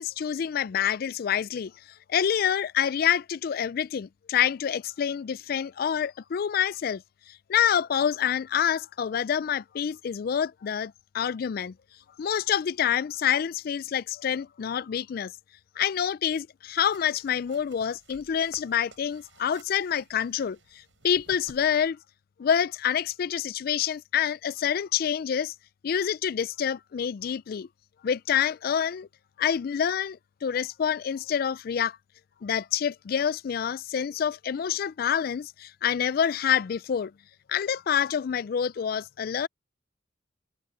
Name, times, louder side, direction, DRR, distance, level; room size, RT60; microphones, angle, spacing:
voice 1, 0.0-1.7 2.1-7.0 7.3-11.7 12.2-15.3 15.8-22.0 22.4-25.5 25.8-27.7 28.0-29.1 29.4-32.0 32.4-37.1 37.5-39.5, left 8 dB, 50° left, 0.3 m, -27 dB
sound 1, 16.8-21.9, right 3 dB, 80° right, 7.6 m, -55 dB
head